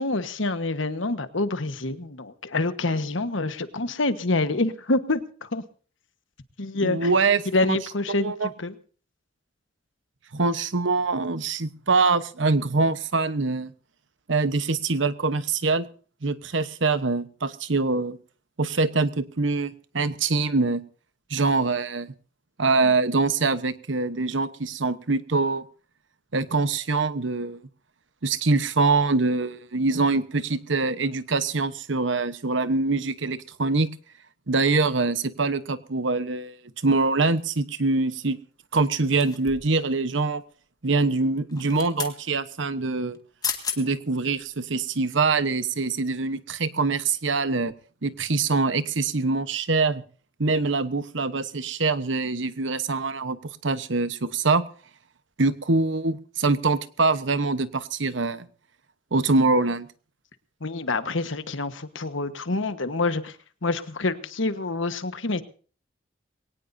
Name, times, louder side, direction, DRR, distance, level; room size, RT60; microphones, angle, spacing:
voice 1, 0.0-5.6 6.6-7.1 7.5-8.7 60.6-65.4, left 2 dB, 85° left, 11 dB, 1.3 m, -27 dB
voice 2, 6.8-7.4 7.7-7.8 8.1-8.5 10.3-13.7 14.3-15.9 16.2-18.2 18.6-20.8 21.3-22.1 22.6-25.6 26.3-27.6 28.2-33.9 34.5-36.6 36.8-38.4 38.7-40.4 40.8-43.2 43.8-47.7 48.0-50.0 50.4-53.4 53.6-54.6 55.4-58.5 59.1-59.9, right 3 dB, 75° right, 13 dB, 1.1 m, -24 dB
sound 1, 39.2-39.8 41.5-42.2 43.1-43.2 43.4-43.8 44.3-44.5, left 6 dB, 20° left, 1.8 m, -32 dB
22.0 x 18.0 x 2.7 m, 0.41 s
head